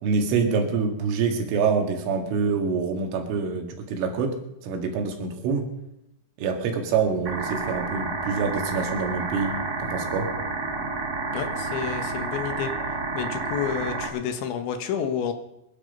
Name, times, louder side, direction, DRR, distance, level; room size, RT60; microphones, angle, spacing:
voice 1, 0.0-5.7 6.4-10.4, right 5 dB, 85° right, 4 dB, 4.6 m, -26 dB
sound 1, 7.2-14.1, right 3 dB, 50° right, 1.1 m, -30 dB
voice 2, 11.3-12.7 13.2-15.3, left 8 dB, 75° left, 7 dB, 3.5 m, -29 dB
26.0 x 10.0 x 5.4 m, 0.80 s
omnidirectional pair, 5.5 m